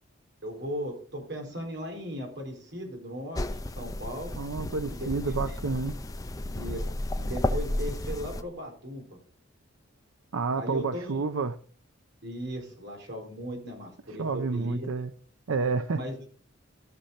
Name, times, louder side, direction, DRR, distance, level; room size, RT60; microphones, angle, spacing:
voice 1, 0.4-3.5 3.8-4.3 4.9-5.6 6.4-6.8 7.1-9.1 10.6-11.2 12.2-14.9 15.9-16.3, equal, 55° right, 1 dB, 4.3 m, -37 dB
sound 1, 3.3-8.4, left 1 dB, 15° left, 0.6 m, -32 dB
voice 2, 4.3-5.9 10.3-11.6 14.2-15.1 15.5-16.0, right 4 dB, 85° right, 10 dB, 0.6 m, -29 dB
13.5 x 5.8 x 5.3 m, 0.44 s
head